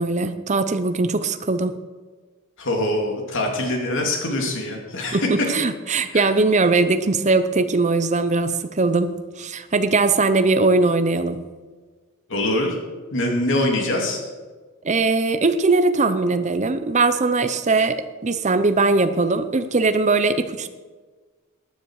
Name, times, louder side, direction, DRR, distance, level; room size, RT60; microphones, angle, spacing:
voice 1, 0.0-1.8 5.1-11.4 14.8-20.7, right 3 dB, 30° right, 10 dB, 0.7 m, -20 dB
voice 2, 2.6-5.3 6.1-6.3 12.3-12.8 13.1-14.3, left 1 dB, 60° left, 1 dB, 2.9 m, -24 dB
14.5 x 9.8 x 4.8 m, 1.4 s
head